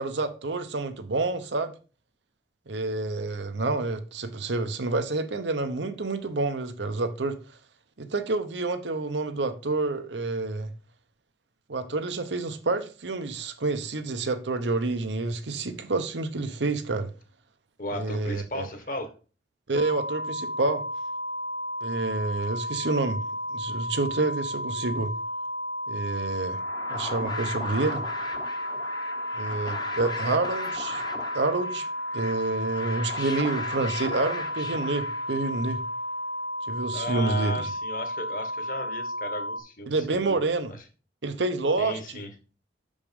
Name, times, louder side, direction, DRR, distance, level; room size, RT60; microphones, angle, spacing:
voice 1, 0.0-1.7 2.7-7.4 8.0-10.7 11.7-17.1 17.9-18.7 19.7-20.8 21.8-23.2 23.5-25.1 25.9-26.6 26.9-28.0 29.4-31.0 31.3-31.9 32.1-35.8 36.7-37.7 39.9-40.7 41.2-42.2, right 3 dB, 90° right, 0.9 m, -28 dB
voice 2, 17.8-19.1 36.9-40.4 41.8-42.3, left 1 dB, 50° left, 1.4 m, -35 dB
sound 1, 19.7-39.6, equal, 90° left, 1.0 m, -33 dB
sound 2, 26.3-35.7, left 3 dB, 25° left, 0.8 m, -38 dB
6.2 x 5.3 x 5.2 m
head